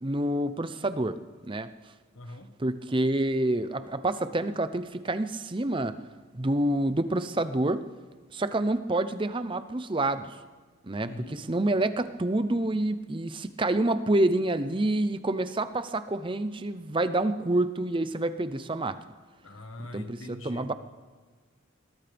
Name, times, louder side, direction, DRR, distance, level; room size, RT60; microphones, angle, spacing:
voice 1, 0.0-1.2 1.5-1.7 2.6-5.9 6.3-7.8 8.3-10.3 10.8-19.0 19.9-20.7, right 1 dB, 25° right, 11 dB, 0.6 m, -27 dB
voice 2, 2.1-2.5 11.0-11.4 19.4-20.7, left 1 dB, 90° left, 6 dB, 1.5 m, -42 dB
21.5 x 19.5 x 3.5 m, 1.4 s
head